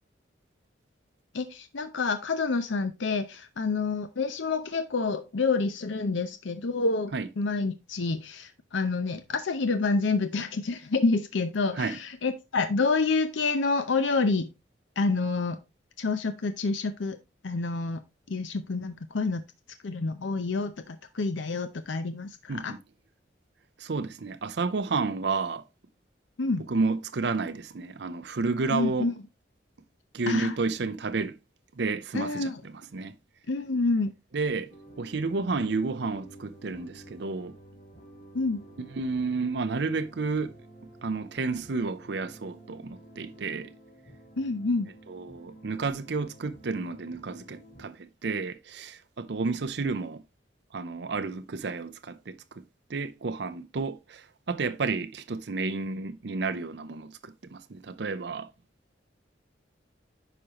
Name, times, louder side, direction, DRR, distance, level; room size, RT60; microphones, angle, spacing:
voice 1, 1.3-14.5 15.0-15.6 16.0-17.2 17.4-18.0 18.3-19.4 19.8-22.7 26.4-26.7 28.7-29.1 30.3-30.6 32.1-32.6 33.5-34.1 38.3-38.6 44.4-44.9, left 3 dB, 80° left, 0.6 m, -28 dB
voice 2, 22.5-22.8 23.8-25.6 26.7-29.1 30.1-31.4 31.7-33.2 34.3-37.6 38.9-40.6 41.0-43.7 45.1-50.2 50.7-52.6 52.9-58.5, right 4 dB, 60° right, 0.6 m, -31 dB
sound 1, 34.7-47.9, right 1 dB, 40° left, 2.8 m, -51 dB
9.8 x 5.1 x 2.9 m
head